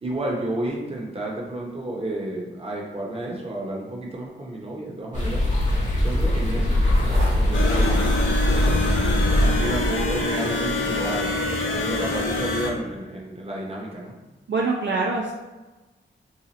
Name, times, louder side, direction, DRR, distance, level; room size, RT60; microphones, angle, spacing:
voice 1, 0.0-5.4 5.9-9.0 9.4-11.3 11.8-14.1, right 1 dB, 30° right, -2 dB, 0.8 m, -31 dB
sound 1, 5.1-10.3, left 1 dB, 35° left, 0.8 m, -21 dB
sound 2, 6.8-11.9, equal, 80° right, 1.2 m, -40 dB
sound 3, 7.5-12.7, left 2 dB, 70° left, 0.6 m, -26 dB
voice 2, 14.5-15.3, right 3 dB, 65° right, -1 dB, 0.4 m, -24 dB
2.8 x 2.4 x 3.9 m, 1.1 s
wide cardioid pair, 125°, 20 cm